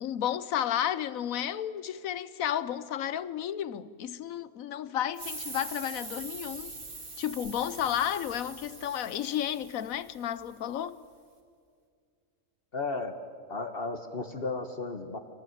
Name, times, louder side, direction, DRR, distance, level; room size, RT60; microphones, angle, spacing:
voice 1, 0.0-6.7 7.2-11.0, left 10 dB, 90° left, 1.2 m, -32 dB
sound 1, 5.1-10.5, right 3 dB, 40° right, 2.3 m, -43 dB
voice 2, 12.7-13.2 13.5-15.2, left 3 dB, 45° left, 1.5 m, -34 dB
25.5 x 18.0 x 9.2 m
omnidirectional pair, 1.4 m